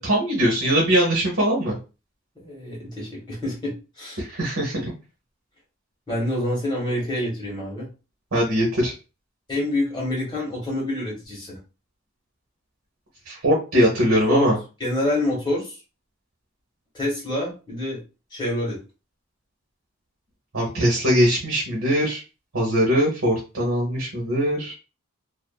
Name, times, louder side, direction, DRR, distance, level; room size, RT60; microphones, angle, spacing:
voice 1, 0.0-1.8 4.2-4.9 8.3-8.9 13.3-14.6 20.5-22.2 22.5-24.7, equal, 75° right, -3 dB, 0.9 m, -21 dB
voice 2, 2.3-4.2 6.1-7.9 9.5-11.6 14.3-15.8 16.9-18.0 18.3-18.8, left 1 dB, 20° left, -5 dB, 1.3 m, -27 dB
2.5 x 2.4 x 2.2 m, 0.31 s
head